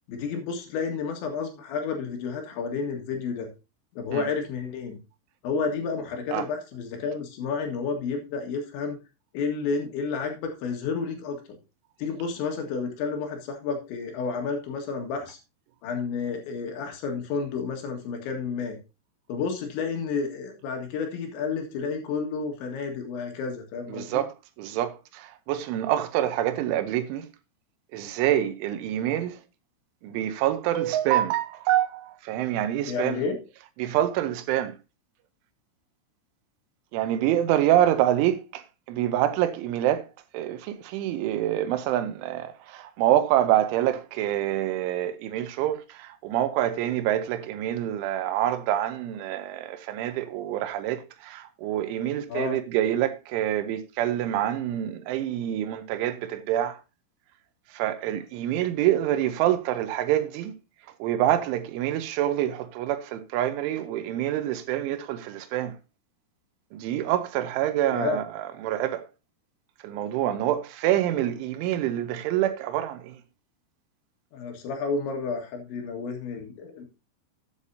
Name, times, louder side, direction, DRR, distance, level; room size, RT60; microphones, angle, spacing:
voice 1, 0.1-3.5 3.9-5.0 5.4-9.0 9.3-11.4 12.0-15.4 15.8-18.8 19.3-24.2 32.9-33.4 52.3-52.6 67.9-68.2 74.3-76.9, left 5 dB, 70° left, 3.9 m, -31 dB
voice 2, 23.9-27.3 27.9-29.4 30.0-33.2 33.8-34.7 36.9-40.1 40.3-56.8 57.7-60.5 61.0-65.8 66.7-69.0 69.8-73.2, right 12 dB, 80° right, 3.1 m, -26 dB
13.5 x 8.5 x 2.7 m
omnidirectional pair, 5.8 m